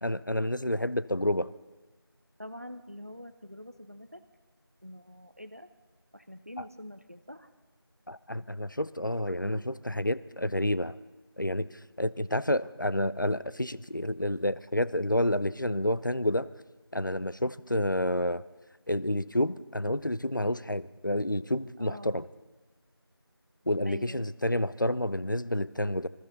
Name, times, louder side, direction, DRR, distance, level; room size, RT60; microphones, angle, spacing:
voice 1, 0.0-1.5 6.6-6.7 8.1-11.0 11.4-11.7 12.0-16.5 16.9-18.4 18.9-22.2 23.7-26.1, left 1 dB, 50° left, 16 dB, 0.5 m, -29 dB
voice 2, 2.4-4.2 4.8-5.7 6.1-7.5 21.8-22.2 23.8-24.3, left 1 dB, 35° right, 9 dB, 0.6 m, -45 dB
25.5 x 13.0 x 4.0 m, 1.2 s
figure-of-eight pair, 180°, 13 cm